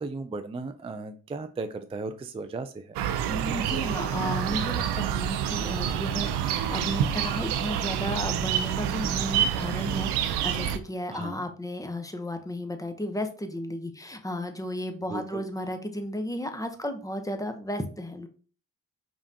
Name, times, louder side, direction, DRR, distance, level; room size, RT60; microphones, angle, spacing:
voice 1, 0.0-3.0 11.1-11.4 15.1-15.4, right 3 dB, 15° right, 8 dB, 0.4 m, -36 dB
sound 1, 3.0-10.8, right 9 dB, 80° right, 0.5 m, -28 dB
voice 2, 3.3-18.3, left 1 dB, 10° left, 7 dB, 0.8 m, -34 dB
5.0 x 2.5 x 2.8 m, 0.39 s
hypercardioid pair, 45°, 40 cm